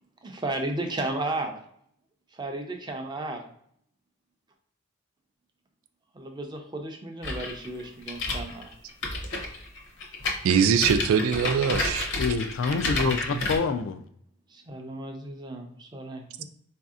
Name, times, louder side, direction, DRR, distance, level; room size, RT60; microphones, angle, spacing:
voice 1, 0.2-1.5 2.3-3.4 6.1-8.7 14.5-16.5, right 2 dB, 20° right, 0.5 m, -34 dB
sound 1, 7.2-13.6, left 2 dB, 55° left, 0.7 m, -30 dB
voice 2, 10.4-12.1 13.0-13.4, right 7 dB, 85° right, 0.3 m, -23 dB
voice 3, 12.2-14.0, left 5 dB, 70° left, 0.3 m, -27 dB
4.0 x 2.7 x 2.3 m
head